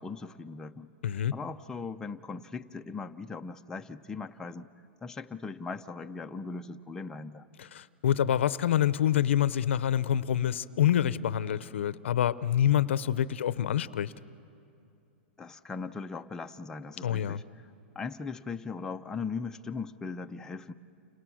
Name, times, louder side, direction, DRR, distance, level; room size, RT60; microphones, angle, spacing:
voice 1, 0.0-0.9 1.3-4.7 5.0-7.4 15.4-17.4 18.0-20.7, left 4 dB, 10° left, 5 dB, 0.6 m, -39 dB
voice 2, 1.0-1.3 7.6-14.1 17.0-17.4, left 10 dB, 80° left, 17 dB, 0.7 m, -27 dB
29.5 x 27.0 x 6.4 m, 2.6 s
hypercardioid pair, 135°, 6 cm